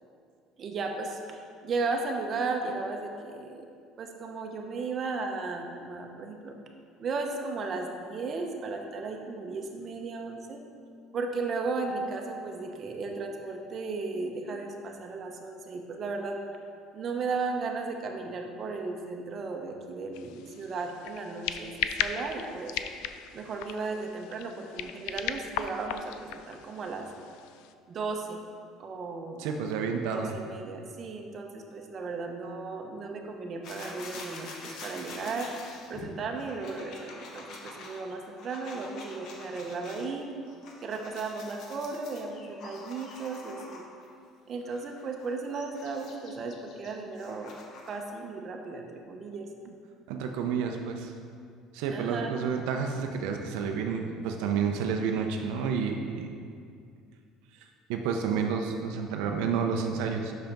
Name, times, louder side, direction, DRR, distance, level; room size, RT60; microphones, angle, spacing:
voice 1, 0.6-3.7 4.0-6.6 7.0-10.6 11.1-16.4 16.9-22.7 23.3-27.1 27.9-28.4 28.8-29.5 30.0-35.5 35.9-40.3 40.8-43.8 44.5-47.6 47.9-49.5 51.9-52.3, right 4 dB, 40° right, 2 dB, 0.8 m, -35 dB
sound 1, 20.1-27.7, left 10 dB, 80° left, 0.3 m, -37 dB
voice 2, 29.4-30.3 50.1-51.1 51.7-56.3 57.9-60.3, right 6 dB, 85° right, 3 dB, 0.5 m, -30 dB
sound 2, 33.6-40.1 40.5-44.1 44.7-48.0, left 3 dB, 60° left, 1.1 m, -46 dB
5.8 x 5.7 x 5.2 m, 2.3 s
cardioid pair, 130°, 0 cm